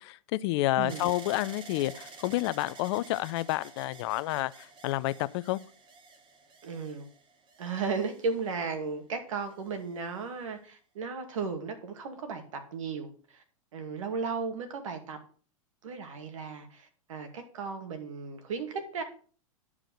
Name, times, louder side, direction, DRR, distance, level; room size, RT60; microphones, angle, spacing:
voice 1, 0.0-5.6, left 17 dB, 50° left, 0.5 m, -30 dB
sound 1, 0.9-8.9 9.6-10.3, right 4 dB, 30° right, 2.1 m, -50 dB
voice 2, 6.6-7.0 7.6-13.4 13.7-15.2 15.8-19.0, right 5 dB, 70° right, 2.3 m, -35 dB
11.0 x 4.9 x 6.3 m
hypercardioid pair, 105°, 17 cm